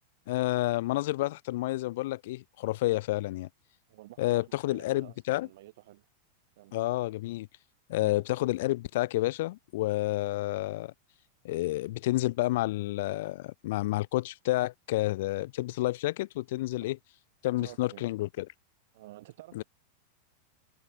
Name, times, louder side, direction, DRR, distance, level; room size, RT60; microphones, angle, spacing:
voice 1, 0.3-3.5 4.2-5.5 6.7-7.5 7.9-10.9 11.4-17.0 17.4-18.5 19.5-19.6, left 17 dB, 55° left, 1.0 m, -30 dB
voice 2, 3.9-6.1 6.6-6.8 8.0-8.2 16.8-16.9 17.6-18.1 18.9-19.6, right 17 dB, 55° right, 7.1 m, -51 dB
figure-of-eight pair, 90°, 0 cm